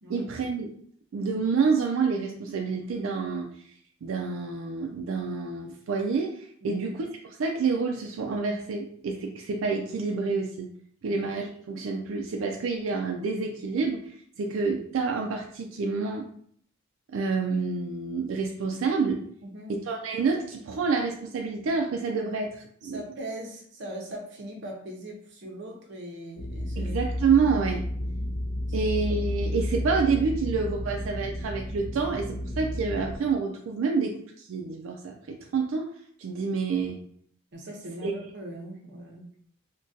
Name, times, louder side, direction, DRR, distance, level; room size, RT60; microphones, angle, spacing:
voice 1, 0.1-0.7 1.1-3.5 4.0-7.1 7.4-10.7 11.0-16.3 17.1-19.2 19.7-23.0 26.8-27.8 28.7-34.2 34.4-35.9 36.2-37.0 38.0-38.1, right 4 dB, 85° right, 2 dB, 0.4 m, -28 dB
voice 2, 19.4-19.7 22.8-27.0 28.0-28.2 28.8-28.9 37.5-39.3, right 1 dB, 60° right, 0 dB, 0.7 m, -40 dB
sound 1, 26.4-33.2, left 1 dB, 25° left, 0.5 m, -32 dB
3.7 x 2.2 x 2.5 m, 0.62 s
head